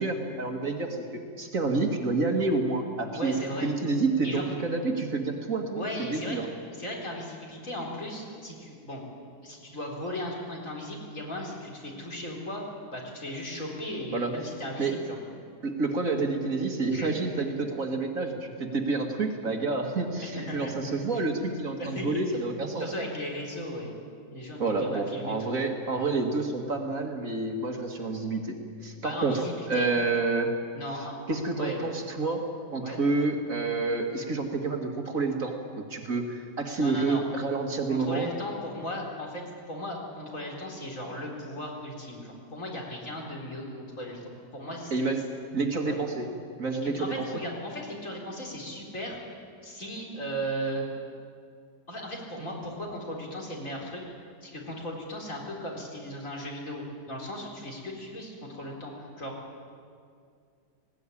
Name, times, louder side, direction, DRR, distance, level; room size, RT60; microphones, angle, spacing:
voice 1, 0.0-3.3 3.6-6.5 14.1-14.4 14.8-14.9 15.6-22.9 24.6-28.6 28.8-29.3 29.7-30.5 31.3-32.4 32.7-38.3 44.9-45.2 45.5-46.3 46.6-47.3, right 3 dB, 50° right, 3 dB, 2.2 m, -29 dB
voice 2, 3.1-3.7 4.2-4.5 5.8-6.4 6.8-9.0 9.4-12.6 12.9-15.2 16.9-17.2 20.2-20.7 21.8-22.4 22.8-23.9 24.3-25.4 29.0-29.9 30.7-31.9 32.8-33.0 36.8-37.2 37.9-39.4 39.7-45.1 45.8-46.0 46.8-49.3 49.6-50.8 51.9-54.0 54.4-59.4, equal, 50° left, -1 dB, 4.5 m, -36 dB
19.0 x 18.0 x 9.9 m, 2.3 s
omnidirectional pair, 1.8 m